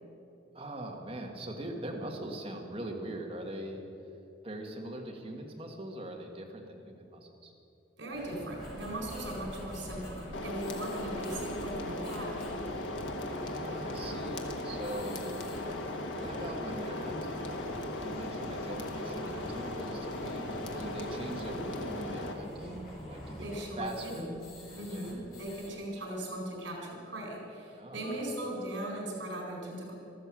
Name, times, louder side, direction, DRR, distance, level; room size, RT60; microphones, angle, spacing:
voice 1, 0.5-3.9 4.4-7.5 13.3-15.2 16.2-17.4 18.0-23.5 23.8-24.3 24.9-25.1 27.8-28.2, right 1 dB, 30° right, 1 dB, 1.7 m, -41 dB
voice 2, 8.0-12.6 23.4-24.3 24.8-30.0, right 1 dB, 75° right, 0 dB, 4.4 m, -39 dB
sound 1, 8.1-25.7, equal, 50° left, 4.4 m, -46 dB
sound 2, 10.3-22.3, left 1 dB, 85° left, 1.4 m, -37 dB
13.5 x 13.0 x 7.6 m, 2.7 s
head